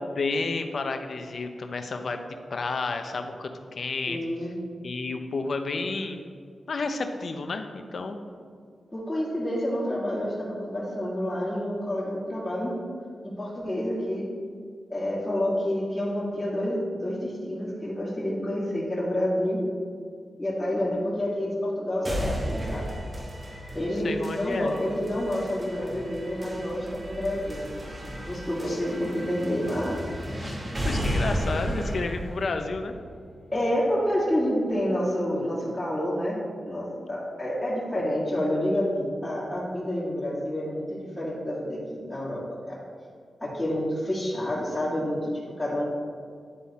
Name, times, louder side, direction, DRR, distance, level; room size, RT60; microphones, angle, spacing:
voice 1, 0.2-2.2 2.5-4.2 4.8-6.2 6.7-8.2 24.0-24.8 28.7-28.8 30.8-33.0, left 3 dB, 60° left, 6 dB, 0.6 m, -31 dB
voice 2, 4.1-4.5 8.9-12.7 13.2-14.3 14.9-19.6 20.4-22.8 23.7-27.7 28.2-30.0 33.5-36.4 36.7-42.4 42.7-42.8 43.4-45.3 45.6-45.9, left 1 dB, 15° left, -9 dB, 1.8 m, -28 dB
sound 1, 22.0-34.0, equal, 30° right, 1.4 m, -34 dB
9.8 x 3.8 x 4.1 m, 2.1 s
cardioid pair, 70°, 0 cm